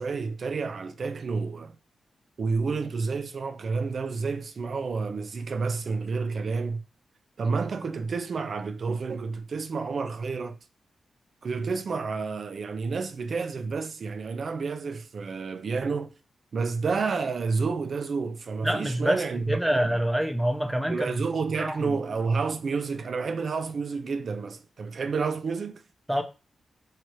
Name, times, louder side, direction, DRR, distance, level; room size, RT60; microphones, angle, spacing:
voice 1, 0.0-1.8 2.4-6.8 7.4-10.6 11.4-16.1 16.5-20.0 20.9-25.8, right 4 dB, 50° right, 0.5 m, -30 dB
voice 2, 18.6-21.2 21.5-22.0 26.1-26.2, equal, 5° right, 0.6 m, -26 dB
4.9 x 2.9 x 3.1 m
wide cardioid pair, 140°, 0 cm